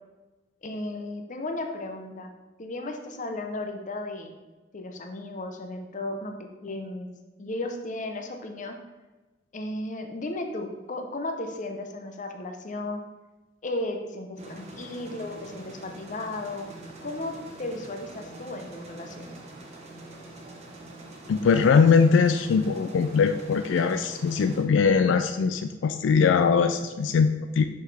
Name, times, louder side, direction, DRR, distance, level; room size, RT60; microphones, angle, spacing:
voice 1, 0.6-2.3 2.6-4.3 4.7-7.1 7.4-8.8 9.5-13.0 13.6-16.7 17.0-19.3, left 2 dB, 45° left, 4 dB, 0.7 m, -35 dB
sound 1, 14.4-24.6, right 2 dB, 35° right, 1.0 m, -45 dB
voice 2, 21.3-27.6, left 5 dB, 85° left, 8 dB, 0.3 m, -21 dB
5.8 x 5.3 x 3.3 m, 1.2 s
head